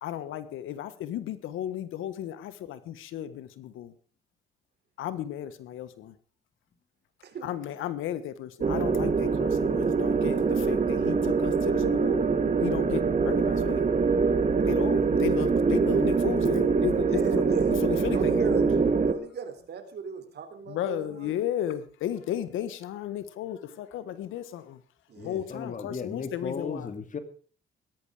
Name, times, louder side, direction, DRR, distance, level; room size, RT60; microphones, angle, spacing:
voice 1, 0.0-3.9 5.0-6.1 7.4-12.3 12.6-13.8 14.7-18.5 20.7-24.8 25.2-26.9, left 11 dB, 85° left, 14 dB, 1.5 m, -34 dB
voice 2, 7.2-7.7 17.1-18.6 19.1-21.3 25.1-25.5, right 6 dB, 55° right, 8 dB, 3.8 m, -37 dB
sound 1, 8.6-19.1, right 5 dB, 40° right, 2.2 m, -24 dB
voice 3, 25.2-27.2, left 5 dB, 40° left, 10 dB, 2.4 m, -36 dB
17.0 x 13.5 x 5.0 m, 0.42 s
cardioid pair, 90°, 20 cm